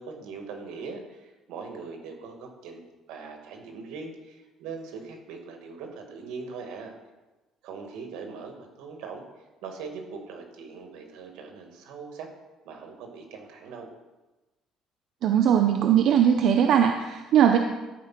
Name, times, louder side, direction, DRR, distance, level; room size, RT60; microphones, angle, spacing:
voice 1, 0.0-2.8 3.1-6.9 7.6-9.2 9.6-12.3 12.7-13.9, right 5 dB, 85° right, 3 dB, 1.9 m, -41 dB
voice 2, 15.2-17.6, right 9 dB, 65° right, 5 dB, 0.6 m, -20 dB
12.5 x 4.7 x 5.9 m, 1.1 s
cardioid pair, 130°, 0 cm